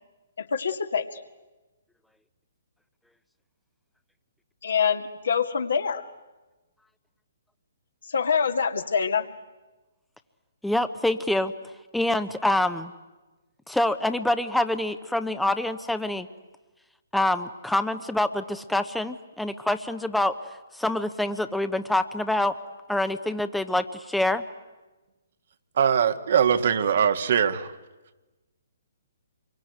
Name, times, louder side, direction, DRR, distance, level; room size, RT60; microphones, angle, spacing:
voice 1, 0.4-1.2 4.6-6.1 8.1-9.3, left 6 dB, 65° left, 6 dB, 2.1 m, -25 dB
voice 2, 10.6-11.5 11.9-12.9 13.7-16.3 17.1-20.4 20.7-22.5 22.9-24.4, left 1 dB, ahead, 10 dB, 1.0 m, -26 dB
voice 3, 25.8-27.7, right 8 dB, 55° right, 8 dB, 1.6 m, -21 dB
27.0 x 23.0 x 9.5 m, 1.1 s
figure-of-eight pair, 130°, 0 cm